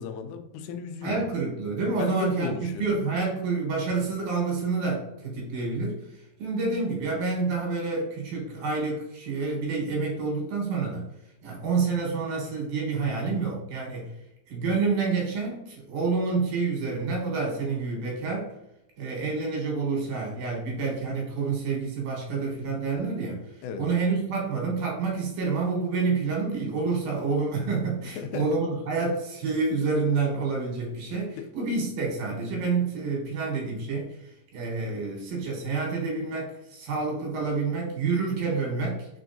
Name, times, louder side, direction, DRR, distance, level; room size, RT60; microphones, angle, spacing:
voice 1, 0.0-1.2 2.0-2.9 23.6-23.8 28.2-28.5 31.4-31.5, left 5 dB, 85° left, 7 dB, 2.0 m, -34 dB
voice 2, 1.0-2.5 2.8-11.1 11.4-14.1 14.5-18.5 19.0-39.1, right 4 dB, 80° right, -1 dB, 2.7 m, -28 dB
4.6 x 4.3 x 2.6 m, 0.89 s
omnidirectional pair, 3.5 m